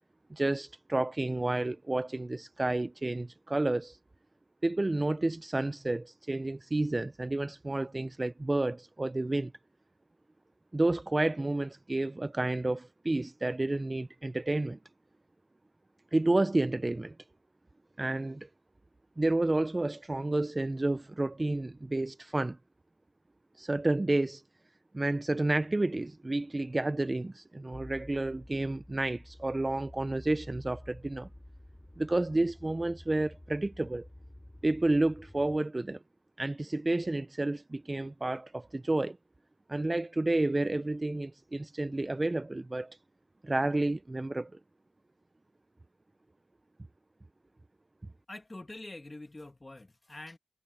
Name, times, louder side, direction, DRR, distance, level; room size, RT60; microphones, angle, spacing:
voice 1, 0.3-4.0 4.6-9.5 10.7-14.8 16.1-17.2 18.0-18.5 19.2-22.6 23.6-24.4 24.9-31.3 32.0-34.1 34.6-36.0 36.4-39.2 39.7-43.0 43.4-44.5, right 2 dB, 40° right, 0.5 m, -30 dB
sound 1, 27.7-35.6, left 1 dB, 20° left, 4.2 m, -51 dB
voice 2, 48.3-50.4, left 2 dB, 40° left, 1.7 m, -45 dB
wide cardioid pair, 60°, 0 cm